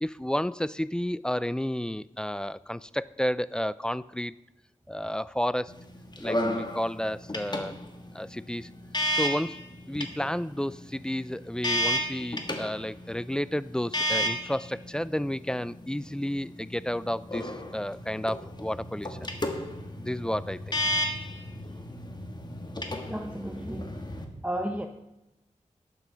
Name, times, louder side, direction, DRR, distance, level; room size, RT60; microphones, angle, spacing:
voice 1, 0.0-4.3 4.9-5.7 6.2-7.7 8.1-8.7 9.1-9.6 9.9-19.2 20.0-20.8, equal, 5° left, 0.3 m, -31 dB
sound 1, 5.7-24.2, left 1 dB, 35° left, 1.4 m, -34 dB
voice 2, 23.1-23.9 24.4-24.9, right 1 dB, 10° right, 0.7 m, -33 dB
11.5 x 8.3 x 5.1 m
wide cardioid pair, 65°, 13 cm